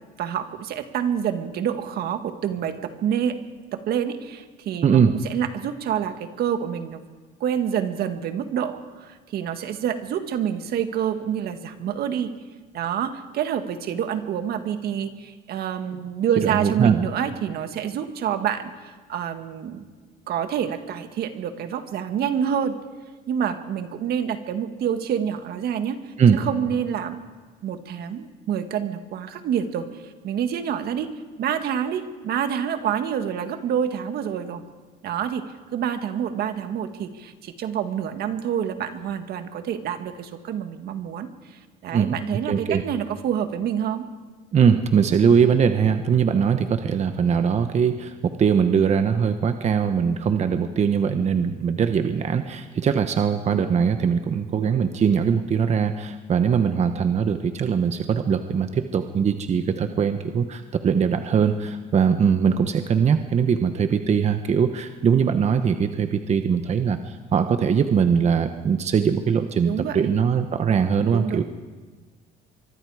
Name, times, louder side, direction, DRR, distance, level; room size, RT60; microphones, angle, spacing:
voice 1, 0.2-3.4 3.7-7.0 7.4-12.3 12.7-19.8 20.3-22.8 23.3-27.2 27.6-31.1 31.4-34.6 35.0-35.4 35.7-44.0 69.7-70.1 71.1-71.4, right 8 dB, 70° right, 8 dB, 1.8 m, -27 dB
voice 2, 4.8-5.1 16.4-17.0 26.2-26.5 41.9-42.2 42.5-42.8 44.5-71.4, right 7 dB, 40° right, 8 dB, 1.1 m, -21 dB
24.5 x 23.5 x 4.9 m, 1.4 s
cardioid pair, 110°, 17 cm